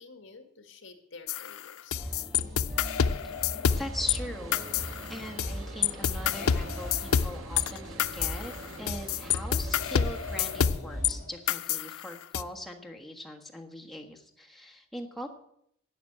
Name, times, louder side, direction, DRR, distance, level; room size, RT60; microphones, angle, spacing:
voice 1, 0.0-2.0, left 4 dB, 60° left, 7 dB, 1.8 m, -50 dB
sound 1, 1.3-4.2 4.5-5.5 5.8-11.1 11.5-12.4, left 8 dB, 75° left, 0.5 m, -28 dB
sound 2, 1.9-11.2, equal, 35° right, 6.3 m, -40 dB
voice 2, 3.7-4.7 5.1-15.3, left 1 dB, ahead, 0 dB, 1.4 m, -41 dB
sound 3, 3.7-10.7, right 4 dB, 65° right, 0.8 m, -47 dB
12.0 x 7.2 x 8.8 m, 0.73 s
head